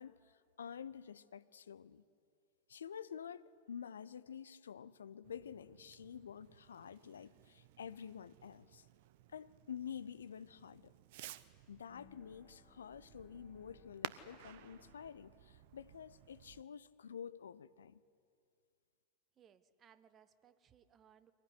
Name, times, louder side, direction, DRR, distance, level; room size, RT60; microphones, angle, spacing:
voice 1, 0.0-2.0 2.7-8.9 9.3-10.9 11.7-18.0, left 8 dB, 70° left, 0.6 m, -49 dB
Fireworks, 5.2-16.6, right 13 dB, 50° right, 0.7 m, -54 dB
Bowed string instrument, 11.8-17.3, left 7 dB, 45° left, 3.1 m, -69 dB
voice 2, 19.3-21.3, right 8 dB, 25° right, 1.1 m, -66 dB
24.0 x 18.0 x 9.7 m
figure-of-eight pair, 90°, 0 cm